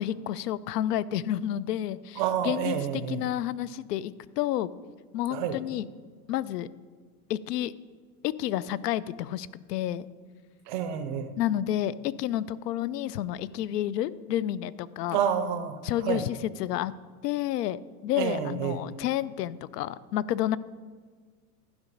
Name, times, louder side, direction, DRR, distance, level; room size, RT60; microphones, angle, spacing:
voice 1, 0.0-4.7 5.1-5.9 6.3-6.7 7.3-7.7 8.2-10.1 11.4-15.2 15.8-16.9 17.2-20.6, left 12 dB, 85° left, 18 dB, 0.6 m, -30 dB
voice 2, 2.2-3.3 5.3-5.6 10.7-11.3 15.1-16.2 18.2-18.8, right 8 dB, 30° right, 9 dB, 0.5 m, -29 dB
11.5 x 4.9 x 5.3 m, 1.5 s
supercardioid pair, 160°, 47 cm